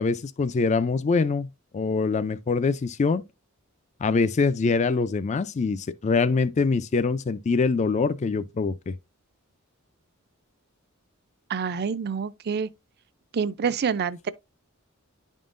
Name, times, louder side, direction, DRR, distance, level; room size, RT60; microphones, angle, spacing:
voice 1, 0.0-3.2 4.0-8.9, left 4 dB, 35° left, 0.4 m, -24 dB
voice 2, 11.5-12.7 13.3-14.3, right 6 dB, 50° right, 0.4 m, -27 dB
11.0 x 3.7 x 2.5 m
head